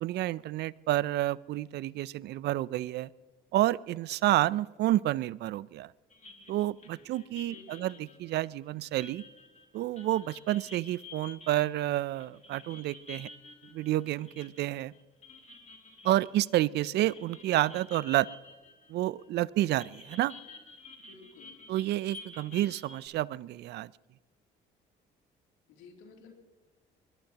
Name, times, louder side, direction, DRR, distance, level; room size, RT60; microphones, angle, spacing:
voice 1, 0.0-3.1 3.5-5.9 6.5-9.2 9.7-13.3 13.7-14.9 16.0-18.3 18.9-20.3 21.7-23.9, right 15 dB, 65° right, 22 dB, 0.4 m, -29 dB
sound 1, 6.1-19.3 19.6-23.1, left 3 dB, 40° left, 2.5 m, -51 dB
voice 2, 7.5-7.9 21.1-21.7 25.7-26.3, left 4 dB, 90° left, 2 dB, 2.9 m, -53 dB
22.5 x 21.0 x 2.9 m, 1.3 s
supercardioid pair, 75°, 19 cm